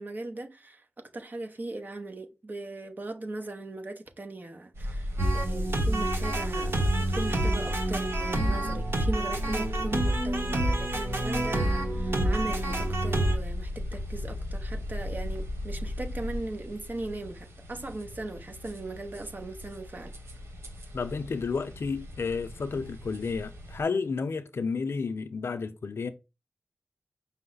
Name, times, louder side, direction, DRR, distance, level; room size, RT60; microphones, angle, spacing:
voice 1, 0.0-20.1, right 2 dB, 45° right, 0.8 m, -38 dB
sound 1, 4.7-23.8, left 1 dB, 80° right, 1.1 m, -36 dB
sound 2, 5.2-13.3, right 1 dB, 60° right, 1.1 m, -28 dB
voice 2, 20.9-26.1, left 4 dB, 70° left, 0.5 m, -31 dB
5.5 x 2.1 x 3.9 m
cardioid pair, 60°, 4 cm